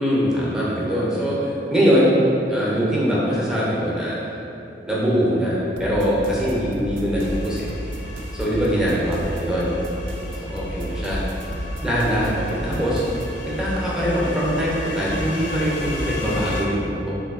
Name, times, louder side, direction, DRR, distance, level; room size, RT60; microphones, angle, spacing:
voice 1, 0.0-2.1 2.5-4.2 4.9-7.7 8.3-9.7 10.4-11.2 11.8-13.0 13.4-17.2, equal, 5° right, -7 dB, 0.5 m, -22 dB
sound 1, 5.8-13.4, right 1 dB, 80° right, 0.3 m, -34 dB
sound 2, 7.1-16.7, left 1 dB, 75° left, 0.4 m, -32 dB
3.3 x 2.7 x 2.3 m, 2.8 s
head